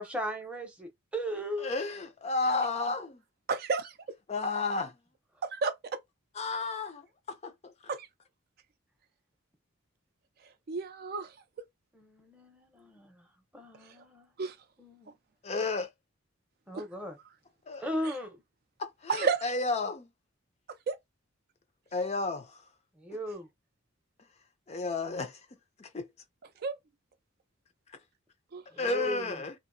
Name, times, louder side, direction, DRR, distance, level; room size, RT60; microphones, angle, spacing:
voice 1, 0.0-1.7 11.9-13.3 13.5-14.3 14.8-15.2 16.7-17.2 17.8-18.4 23.0-23.5 28.7-29.4, equal, 5° right, 0.6 m, -37 dB
voice 2, 1.6-3.2 4.3-5.0 6.4-7.7 15.4-15.9 17.7-17.8 18.8-20.1 21.9-22.7 24.7-25.4 25.8-26.1 28.8-29.5, left 3 dB, 30° left, 0.4 m, -32 dB
voice 3, 3.5-4.0 5.4-6.0 7.9-8.1 10.7-11.7 13.8-13.9 14.4-14.6 16.7-16.8 18.0-18.1 19.1-19.4 20.9-21.0 26.6-26.8 28.5-28.6, right 4 dB, 45° right, 0.4 m, -32 dB
2.7 x 2.4 x 2.6 m
head